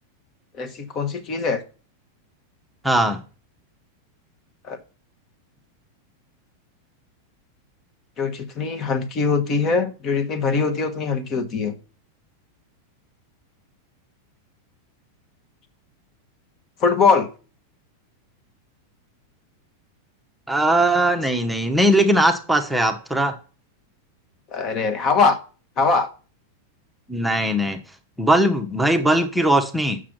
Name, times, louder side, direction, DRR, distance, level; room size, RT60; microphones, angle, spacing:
voice 1, 0.6-1.6 4.6-4.8 8.2-11.7 16.8-17.3 24.5-25.4 25.8-26.1, left 4 dB, 35° left, 1.2 m, -22 dB
voice 2, 2.8-3.2 20.5-23.3 27.1-27.8 28.2-30.0, right 1 dB, ahead, 0.9 m, -19 dB
7.3 x 6.1 x 6.0 m
figure-of-eight pair, 90°, 0 cm